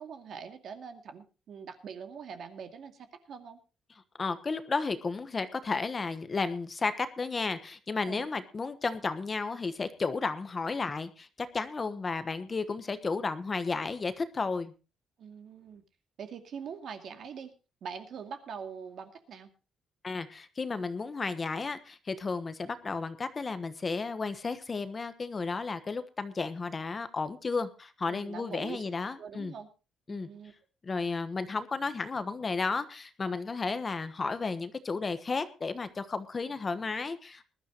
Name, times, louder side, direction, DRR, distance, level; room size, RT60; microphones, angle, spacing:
voice 1, 0.0-3.6 8.1-8.3 15.2-15.8 16.2-17.5 17.8-19.5 28.1-28.8 29.2-29.7 30.1-30.5, right 6 dB, 60° right, 6 dB, 2.3 m, -43 dB
voice 2, 4.2-14.7 20.0-29.5 30.1-30.3 30.8-37.5, left 4 dB, 25° left, 11 dB, 1.1 m, -33 dB
20.5 x 12.5 x 3.0 m, 0.32 s
cardioid pair, 135°, 0 cm